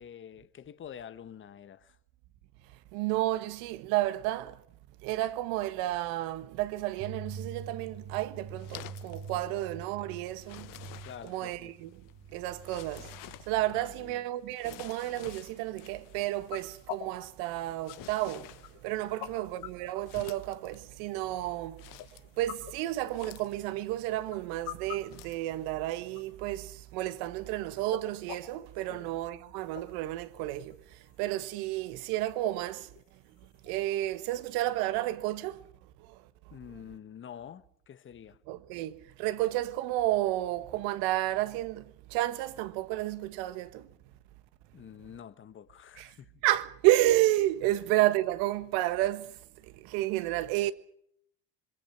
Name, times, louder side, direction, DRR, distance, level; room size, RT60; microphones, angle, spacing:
voice 1, 0.0-2.0 9.5-9.6 11.0-11.7 13.7-14.2 19.1-19.5 28.9-29.1 36.5-38.4 44.7-46.3, left 9 dB, 30° left, 1.2 m, -48 dB
voice 2, 2.6-4.6 5.0-10.8 11.2-22.0 22.3-36.5 38.5-43.9 46.0-46.2 46.4-50.7, right 15 dB, 75° right, 1.7 m, -31 dB
sound 1, 7.0-13.8, right 5 dB, 40° right, 1.6 m, -45 dB
sound 2, 7.7-25.5, left 16 dB, 60° left, 1.1 m, -52 dB
sound 3, 15.9-34.5, left 13 dB, 75° left, 2.5 m, -49 dB
26.5 x 22.5 x 6.0 m
supercardioid pair, 105°, 37 cm